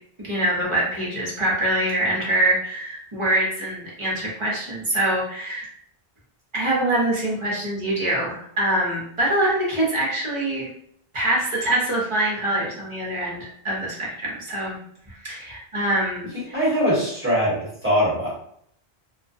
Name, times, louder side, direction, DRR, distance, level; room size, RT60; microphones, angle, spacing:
voice 1, 0.2-5.7 6.5-10.7 11.1-14.8 15.1-16.6, right 1 dB, 30° right, -5 dB, 0.9 m, -24 dB
voice 2, 16.3-18.3, equal, 15° right, -8 dB, 1.1 m, -22 dB
2.3 x 2.2 x 2.5 m, 0.68 s
omnidirectional pair, 1.1 m